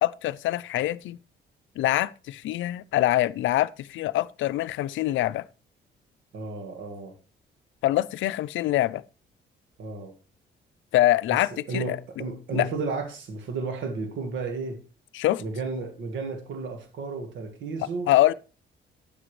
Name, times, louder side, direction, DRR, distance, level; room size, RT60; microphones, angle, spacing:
voice 1, 0.0-1.2 1.8-5.4 7.8-9.0 10.9-12.0 12.5-12.7 15.1-15.4 18.1-18.3, left 14 dB, 75° left, 0.5 m, -24 dB
voice 2, 6.3-7.2 9.8-10.2 11.3-14.8 15.4-18.1, right 4 dB, 75° right, 1.7 m, -33 dB
9.4 x 7.6 x 3.2 m
cardioid pair, 90°, 20 cm